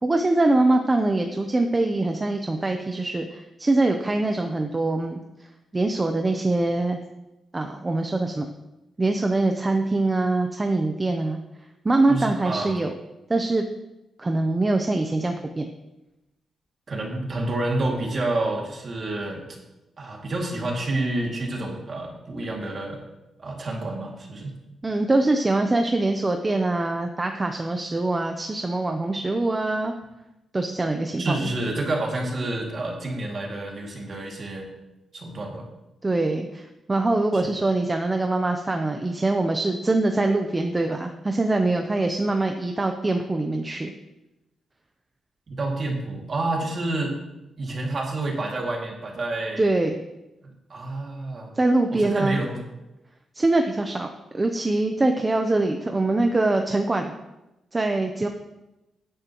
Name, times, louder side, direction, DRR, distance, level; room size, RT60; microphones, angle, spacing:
voice 1, 0.0-5.2 5.7-7.0 7.5-8.5 9.0-11.4 11.8-12.9 13.3-13.6 14.2-15.7 24.8-29.9 30.5-31.5 36.0-43.9 49.6-50.0 51.6-52.4 53.4-54.1 54.3-57.1 57.7-58.3, right 2 dB, 15° right, 4 dB, 0.6 m, -23 dB
voice 2, 12.1-12.8 16.9-19.5 20.0-23.0 23.4-24.5 31.2-34.7 35.1-35.7 37.3-37.4 45.5-47.2 47.6-49.7 50.4-51.5 51.9-52.6, right 2 dB, 35° right, 0 dB, 2.2 m, -29 dB
16.0 x 10.0 x 3.0 m, 0.97 s
wide cardioid pair, 175°, 0 cm